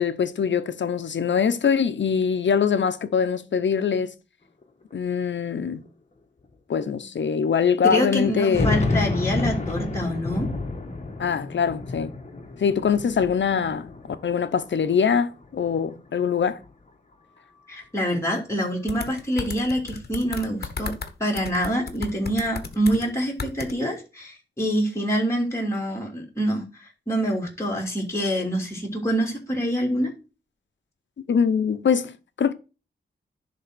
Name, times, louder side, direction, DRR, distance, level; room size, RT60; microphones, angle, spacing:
voice 1, 0.0-4.1 4.9-5.8 6.7-8.7 11.2-12.1 12.6-13.9 14.2-16.6 31.3-32.5, left 6 dB, 75° left, 0.9 m, -23 dB
sound 1, 4.6-4.7 4.9-5.0 5.9-6.0 6.4-6.5 8.2-14.6 15.0-15.9, left 3 dB, 35° left, 1.5 m, -29 dB
voice 2, 7.8-10.5 17.7-20.9 21.2-30.1, equal, 15° left, 2.9 m, -26 dB
sound 2, 18.9-21.1 21.4-23.1 23.4-23.7, left 5 dB, 55° left, 1.3 m, -34 dB
10.5 x 3.8 x 6.2 m
wide cardioid pair, 115°, 19 cm